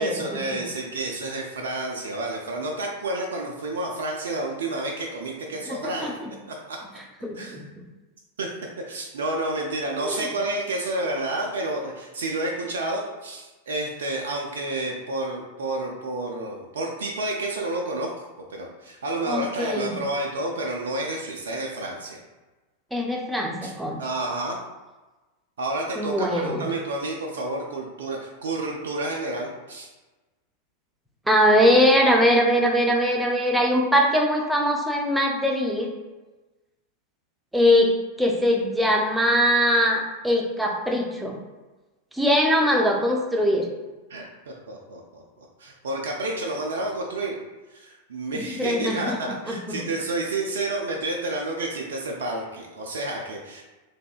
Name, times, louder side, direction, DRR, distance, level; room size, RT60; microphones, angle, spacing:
voice 1, 0.0-6.2 6.5-6.8 7.3-7.6 8.4-8.5 8.8-18.2 18.5-22.2 23.6-23.7 24.0-24.6 25.6-29.9 44.1-47.4 47.7-53.6, right 2 dB, 65° right, 0 dB, 0.4 m, -30 dB
voice 2, 5.7-6.1 7.2-7.6 10.0-10.2 19.3-19.9 22.9-24.0 26.0-26.7 31.3-35.9 37.5-41.4 42.1-43.7 48.3-49.2 49.5-49.8, equal, 5° right, 0 dB, 0.5 m, -22 dB
3.4 x 2.6 x 2.3 m, 1.2 s
figure-of-eight pair, 90°, 0 cm